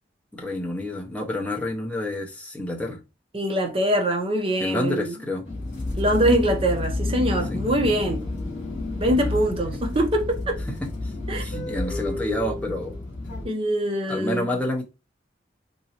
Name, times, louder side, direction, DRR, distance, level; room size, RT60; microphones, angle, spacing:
voice 1, 0.3-3.0 4.6-5.5 7.5-7.6 9.2-9.4 10.7-11.1 11.4-13.0 14.1-14.8, left 1 dB, 5° left, 0.6 m, -29 dB
voice 2, 3.3-5.1 6.0-8.3 9.0-10.6 11.3-11.4 13.4-14.5, right 1 dB, 30° right, 0.7 m, -23 dB
sound 1, 5.4-13.5, left 2 dB, 40° left, 2.1 m, -30 dB
3.7 x 3.0 x 2.8 m
head